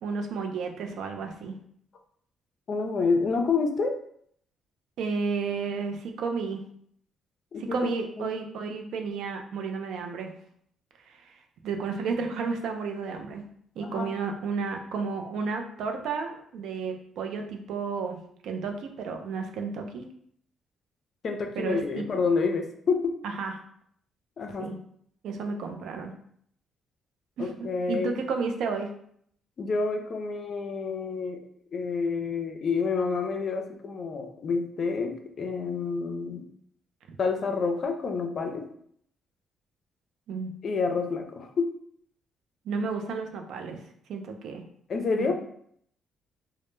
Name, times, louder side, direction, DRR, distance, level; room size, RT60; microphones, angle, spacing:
voice 1, 0.0-1.6 5.0-6.6 7.6-10.3 11.1-11.3 11.6-13.4 13.8-18.2 18.4-20.0 21.6-22.2 23.2-23.5 24.6-24.8 25.2-26.1 27.4-27.5 27.9-28.9 37.1-37.2 40.3-40.5 42.7-43.8 44.1-44.6 45.2-45.3, right 5 dB, 80° right, 4 dB, 0.3 m, -32 dB
voice 2, 2.7-4.0 7.5-7.9 8.2-8.3 13.8-14.1 21.2-23.2 24.4-24.7 27.4-28.1 29.6-31.4 31.7-36.4 37.2-38.7 40.6-41.7 44.9-45.3, left 4 dB, 50° left, 4 dB, 0.4 m, -28 dB
2.1 x 2.0 x 3.0 m, 0.65 s
cardioid pair, 90°, 0 cm